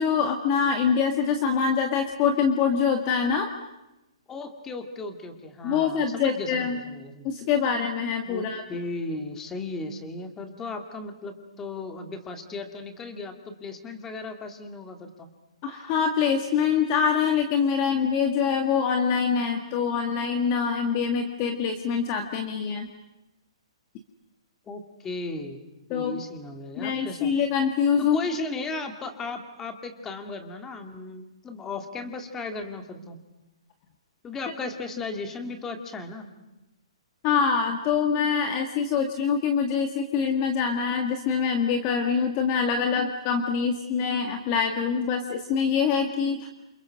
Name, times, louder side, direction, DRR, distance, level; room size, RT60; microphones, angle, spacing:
voice 1, 0.0-3.5 5.6-6.8 7.2-8.6 15.6-22.9 25.9-26.2 26.8-28.2 37.2-46.5, left 6 dB, 25° left, 6 dB, 1.7 m, -24 dB
voice 2, 4.3-7.3 8.3-15.3 24.7-25.6 25.9-27.3 28.0-33.2 34.2-36.3, left 3 dB, 10° left, 6 dB, 2.3 m, -36 dB
29.5 x 28.5 x 6.5 m, 0.97 s
hypercardioid pair, 165°, 3 cm